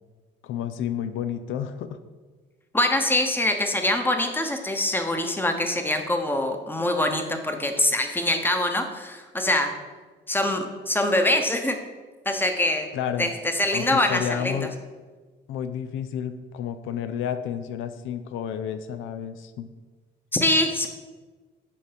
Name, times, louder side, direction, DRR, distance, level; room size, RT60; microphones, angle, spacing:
voice 1, 0.4-2.0 12.9-13.3 13.7-14.7 15.5-19.7, left 9 dB, 80° left, 10 dB, 0.5 m, -31 dB
voice 2, 2.7-9.7 10.3-11.8 12.2-12.9 13.2-14.6 20.3-20.9, left 1 dB, 10° left, 5 dB, 0.9 m, -24 dB
7.0 x 4.6 x 5.1 m, 1.4 s
cardioid pair, 90°, 20 cm